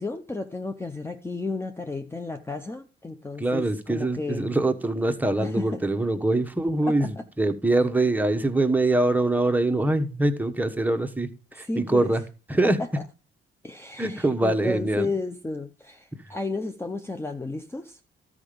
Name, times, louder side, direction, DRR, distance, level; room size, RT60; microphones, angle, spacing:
voice 1, 0.0-4.6 5.4-5.8 6.8-7.2 11.5-12.1 12.8-12.9 13.6-18.0, left 3 dB, 10° left, 0.7 m, -33 dB
voice 2, 3.4-12.2 12.5-12.8 14.0-15.1 16.1-16.2, right 2 dB, 10° right, 1.1 m, -24 dB
12.5 x 4.9 x 5.1 m
cardioid pair, 90°, 20 cm